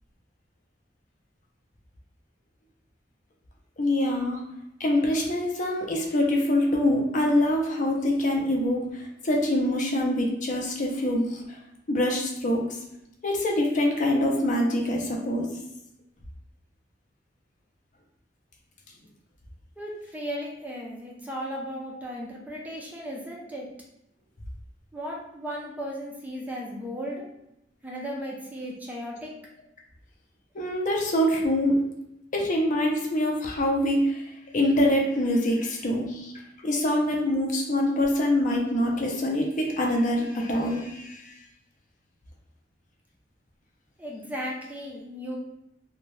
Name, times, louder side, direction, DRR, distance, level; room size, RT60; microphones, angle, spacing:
voice 1, 3.8-4.5 4.8-11.4 11.9-12.6 13.2-15.5 30.5-31.8 32.3-34.3 34.5-36.3 36.6-41.3, left 1 dB, 45° left, 0 dB, 0.5 m, -25 dB
voice 2, 19.8-23.7 24.9-27.3 27.8-29.3 44.0-45.4, equal, 10° right, -3 dB, 0.4 m, -36 dB
2.7 x 2.2 x 3.1 m, 0.83 s
head